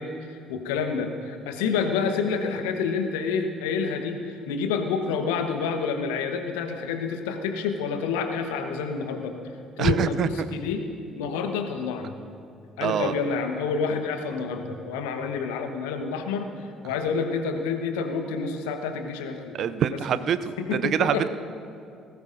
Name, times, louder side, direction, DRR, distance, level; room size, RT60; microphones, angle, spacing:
voice 1, 0.0-9.3 9.8-10.8 11.2-12.2 12.8-16.5 16.8-19.7 20.6-21.3, left 5 dB, 70° left, 6 dB, 1.1 m, -28 dB
voice 2, 9.8-10.3 12.8-13.1 19.5-21.3, right 9 dB, 50° right, 14 dB, 0.5 m, -25 dB
19.5 x 16.5 x 2.6 m, 2.4 s
figure-of-eight pair, 50°, 0 cm